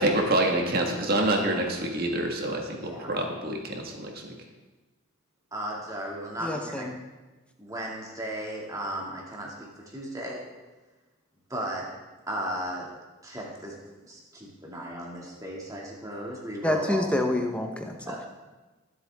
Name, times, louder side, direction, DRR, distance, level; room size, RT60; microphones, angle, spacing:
voice 1, 0.0-4.3, right 1 dB, 45° right, 1 dB, 1.7 m, -27 dB
voice 2, 2.8-3.1 5.5-6.9 7.6-10.4 11.5-11.9 12.3-12.8 13.2-13.7 14.1-17.0 18.1-18.2, right 1 dB, 15° right, -2 dB, 2.3 m, -35 dB
voice 3, 6.4-6.9 16.6-18.3, left 1 dB, 5° left, 3 dB, 1.0 m, -28 dB
23.0 x 8.0 x 3.6 m, 1.2 s
head